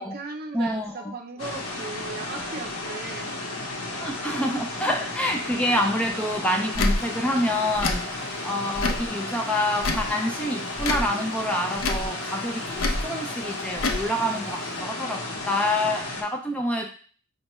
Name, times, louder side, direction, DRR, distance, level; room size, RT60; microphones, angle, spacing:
voice 1, 0.0-3.3, right 3 dB, 45° right, 3 dB, 0.5 m, -37 dB
voice 2, 0.5-1.2 4.0-16.9, left 1 dB, 5° left, 2 dB, 0.3 m, -27 dB
sound 1, 1.4-16.2, left 2 dB, 90° left, 0.8 m, -33 dB
Tick / Tick-tock, 6.7-7.0 7.7-8.0 8.7-9.1 9.8-10.1 10.8-11.1 11.8-12.1 12.8-13.0 13.8-14.0, left 2 dB, 70° left, 0.5 m, -25 dB
5.3 x 2.2 x 3.0 m, 0.43 s
head